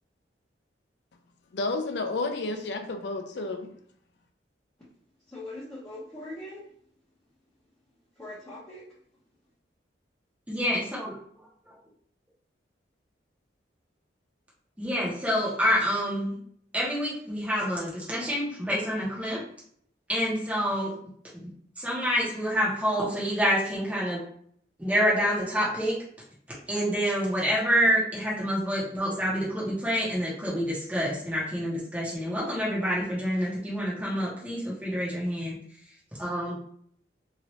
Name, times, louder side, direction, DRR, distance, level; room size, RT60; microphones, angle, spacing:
voice 1, 1.5-3.7, left 3 dB, 65° left, 5 dB, 0.5 m, -31 dB
voice 2, 5.3-6.6 8.2-8.8, left 1 dB, 15° left, -10 dB, 1.0 m, -41 dB
voice 3, 10.5-11.2 11.7-11.8 14.8-16.4 16.7-19.4 20.1-20.9 21.3-24.2 24.8-26.0 26.7-35.5 36.2-36.6, equal, 10° right, -7 dB, 1.0 m, -27 dB
2.9 x 2.6 x 3.0 m, 0.62 s
head